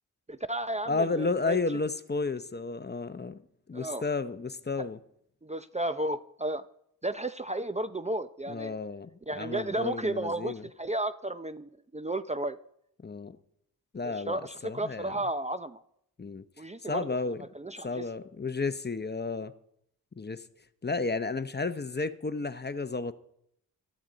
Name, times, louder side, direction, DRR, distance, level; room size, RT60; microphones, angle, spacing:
voice 1, 0.3-1.6 3.7-4.0 5.4-6.6 7.0-8.8 9.3-12.6 14.0-15.8 16.6-17.1 17.5-18.1, right 1 dB, 20° right, 0.6 m, -33 dB
voice 2, 0.9-3.4 3.7-5.0 8.5-10.6 13.0-13.3 13.9-15.1 16.2-16.4 16.8-17.4 17.8-19.5 20.2-20.4 20.8-23.1, left 3 dB, 25° left, 0.8 m, -32 dB
18.5 x 13.0 x 4.0 m
cardioid pair, 65°, 38 cm